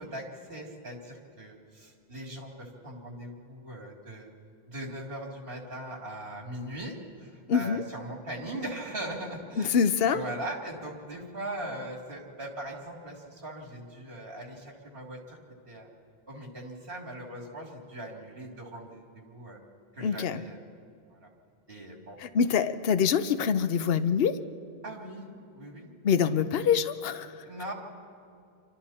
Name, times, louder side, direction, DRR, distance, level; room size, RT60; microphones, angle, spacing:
voice 1, 0.0-4.3 4.7-9.8 10.1-15.4 15.7-15.9 16.3-19.6 19.9-20.6 21.1-21.3 21.7-22.2 24.8-25.3 25.5-25.9 27.4-27.7, right 1 dB, 60° right, 0 dB, 3.2 m, -40 dB
voice 2, 7.5-7.8 9.6-10.2 20.0-20.4 22.2-24.4 26.0-27.3, left 7 dB, 65° left, 11 dB, 1.0 m, -25 dB
28.0 x 25.0 x 4.3 m, 2.4 s
omnidirectional pair, 1.1 m